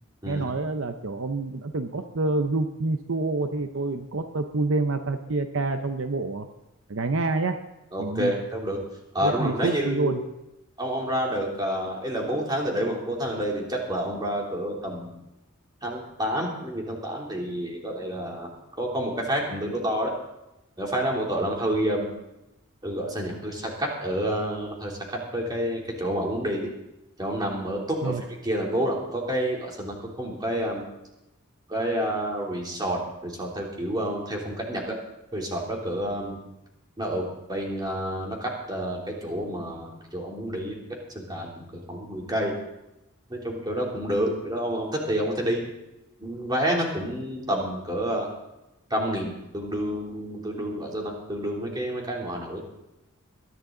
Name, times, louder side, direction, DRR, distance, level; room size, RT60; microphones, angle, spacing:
voice 1, 0.3-6.5 6.9-7.6 8.0-8.3 9.2-10.2 28.0-28.2, right 3 dB, 65° right, 7 dB, 0.7 m, -27 dB
voice 2, 7.9-8.8 9.1-10.2 10.8-15.1 15.8-18.5 18.8-20.1 20.8-22.1 22.8-26.7 27.2-30.8 31.7-35.0 35.3-36.4 37.0-40.7 41.1-42.5 43.3-45.7 46.2-48.3 48.9-52.6, equal, 20° right, -2 dB, 3.0 m, -29 dB
21.5 x 11.0 x 3.9 m, 0.92 s
head